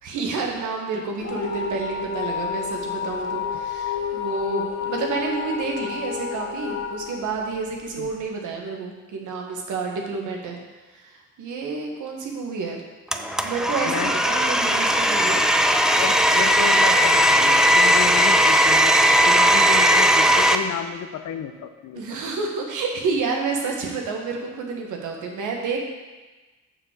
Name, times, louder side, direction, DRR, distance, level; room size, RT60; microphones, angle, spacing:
voice 1, 0.0-10.6 10.9-12.8 13.1-15.4 21.9-25.8, right 4 dB, 80° right, 1 dB, 1.7 m, -29 dB
sound 1, 1.2-8.1, left 6 dB, 45° left, 1.1 m, -30 dB
Domestic sounds home sounds, 13.1-20.6, equal, ahead, 0.5 m, -18 dB
voice 2, 13.9-14.2 16.0-19.0 19.2-22.2, left 9 dB, 70° left, 8 dB, 0.9 m, -31 dB
6.9 x 5.6 x 6.7 m, 1.2 s
cardioid pair, 90°, 30 cm